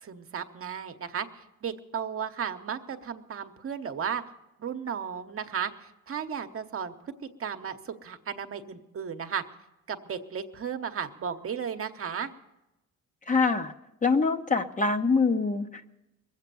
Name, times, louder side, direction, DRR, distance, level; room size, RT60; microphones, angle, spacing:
voice 1, 0.0-4.2 4.6-6.9 7.4-9.4 9.9-12.3, right 7 dB, 45° right, 7 dB, 1.0 m, -34 dB
voice 2, 13.3-13.7 14.0-15.9, left 4 dB, 25° left, 6 dB, 0.8 m, -25 dB
21.0 x 8.2 x 6.9 m, 0.95 s
cardioid pair, 90°, 30 cm